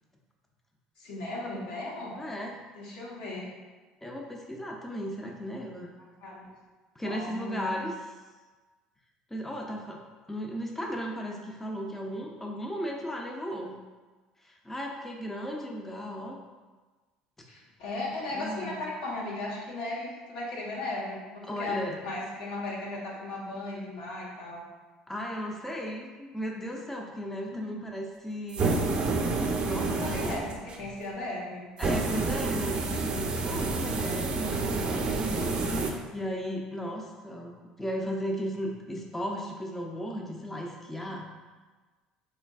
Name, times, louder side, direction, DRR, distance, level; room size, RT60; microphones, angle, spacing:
voice 1, 1.0-2.2 2.7-3.5 6.2-6.5 7.0-7.7 17.5-24.6 27.5-27.7 29.8-30.5 30.8-31.7, left 2 dB, 80° left, -5 dB, 1.0 m, -36 dB
voice 2, 2.2-2.6 4.0-5.9 7.0-7.9 9.3-10.0 10.3-13.8 14.4-16.4 18.3-18.8 21.4-22.0 25.1-28.9 29.6-30.4 31.8-41.3, equal, 10° left, 0 dB, 0.5 m, -36 dB
sound 1, 28.5-30.8 31.8-35.9, right 3 dB, 40° right, 0.6 m, -29 dB
3.7 x 3.3 x 2.3 m, 1.3 s
supercardioid pair, 80°, 3 cm